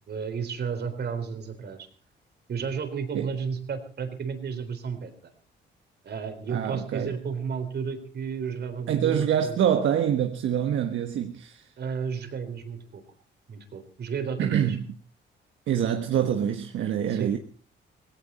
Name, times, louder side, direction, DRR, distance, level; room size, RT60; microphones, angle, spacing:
voice 1, 0.1-1.9 2.5-5.3 6.0-9.6 11.8-13.0 13.5-14.8 17.1-17.4, right 6 dB, 55° right, 3.7 m, -32 dB
voice 2, 6.5-7.1 8.9-11.7 14.4-14.8 15.7-17.4, right 9 dB, 75° right, 1.4 m, -25 dB
18.0 x 17.0 x 4.3 m
cardioid pair, 90°, 20 cm